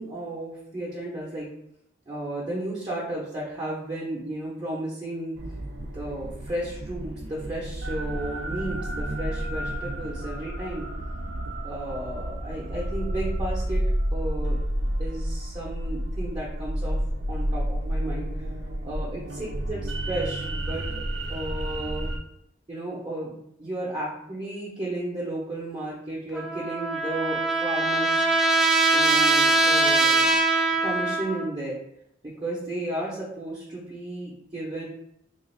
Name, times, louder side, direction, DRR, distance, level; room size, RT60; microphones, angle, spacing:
voice 1, 0.0-1.5 2.1-5.4 5.9-10.9 11.6-13.8 14.1-14.6 15.0-17.0 17.3-18.5 18.8-20.9 21.3-22.1 22.7-28.3 28.9-30.3 30.8-31.8 32.2-34.8, right 1 dB, 25° right, -7 dB, 0.7 m, -33 dB
sound 1, 5.4-22.2, right 1 dB, 75° right, 0.5 m, -30 dB
Trumpet, 26.3-31.5, right 2 dB, 5° right, 0.4 m, -22 dB
3.0 x 2.4 x 4.3 m, 0.75 s
head